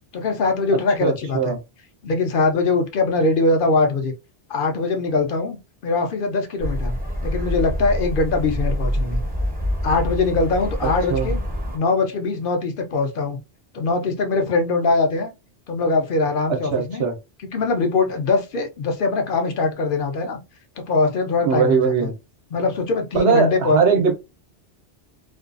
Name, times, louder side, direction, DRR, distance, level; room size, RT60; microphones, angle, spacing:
voice 1, 0.1-1.6 2.0-4.1 4.5-5.6 5.8-7.0 7.2-9.2 9.8-11.4 11.7-13.4 13.7-15.3 15.7-17.0 17.5-20.4 20.8-22.1 22.5-23.8, left 3 dB, 55° left, 0.7 m, -22 dB
voice 2, 1.0-1.6 10.8-11.3 16.5-17.2 21.4-22.1 23.1-24.1, right 6 dB, 65° right, 0.9 m, -20 dB
sound 1, 6.6-11.8, equal, 10° right, 0.6 m, -26 dB
2.5 x 2.3 x 2.4 m
omnidirectional pair, 1.2 m